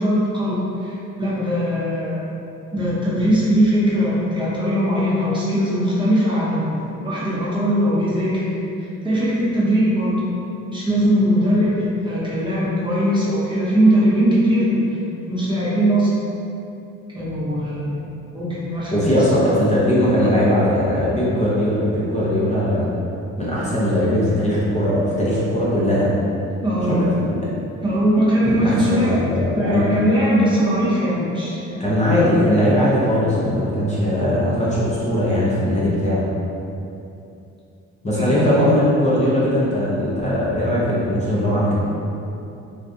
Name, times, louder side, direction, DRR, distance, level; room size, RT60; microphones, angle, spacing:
voice 1, 0.0-2.2 2.7-8.6 9.0-10.2 10.7-14.8 15.3-16.1 17.1-19.1 26.6-27.0 27.8-29.2 29.5-31.8 38.1-38.6, equal, 15° right, -8 dB, 0.8 m, -20 dB
voice 2, 18.9-22.9 23.4-26.1 26.9-27.4 28.4-29.9 31.8-36.2 38.0-41.9, equal, 25° left, -8 dB, 0.6 m, -19 dB
3.3 x 2.4 x 2.5 m, 2.8 s
cardioid pair, 90°, 30 cm